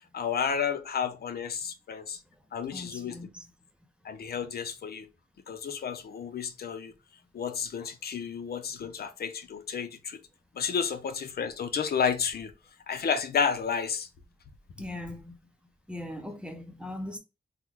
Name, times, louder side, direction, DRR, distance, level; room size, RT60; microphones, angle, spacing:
voice 1, 0.1-2.2 2.5-3.2 4.0-5.1 5.5-6.9 7.3-10.2 10.6-12.5 12.9-14.1, left 6 dB, 85° left, 0.6 m, -31 dB
voice 2, 2.7-3.5 14.8-15.4 15.9-17.2, left 1 dB, 5° right, 0.5 m, -39 dB
3.7 x 2.1 x 3.0 m
wide cardioid pair, 160°, 16 cm